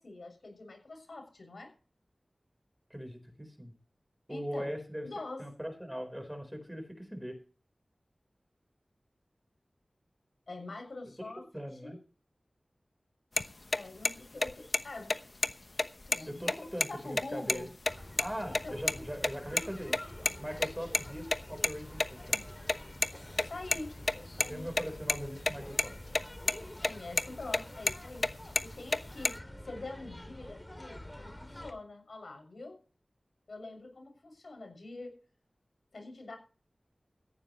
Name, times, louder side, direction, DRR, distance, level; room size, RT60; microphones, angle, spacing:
voice 1, 0.0-1.7 4.3-4.7 5.0-5.4 10.5-11.4 11.7-12.0 13.7-15.2 16.0-16.6 16.9-17.7 18.5-19.0 23.4-24.7 26.8-28.3 28.6-32.8 33.5-35.1 35.9-36.4, left 2 dB, 80° left, 5 dB, 6.6 m, -45 dB
voice 2, 2.9-3.7 4.3-7.4 11.5-12.0 16.3-17.7 18.2-20.0 20.4-22.4 24.5-26.2, equal, 5° right, 7 dB, 4.3 m, -40 dB
sound 1, 13.4-13.5 13.7-13.8 14.1-14.2 14.4-14.8 15.1-15.2 15.4-15.5 15.8-16.9 17.1-17.2 17.5-17.6 17.9-18.2 18.5-19.0 19.2-20.3 20.6-23.1 23.4-25.2 25.5-25.6 25.8-26.2 26.5-26.9 27.2-28.3 28.6-29.3, left 2 dB, 50° left, 1.0 m, -29 dB
sound 2, 17.9-31.7, left 1 dB, 15° left, 2.6 m, -47 dB
18.0 x 15.0 x 3.1 m, 0.37 s
wide cardioid pair, 75°, 0 cm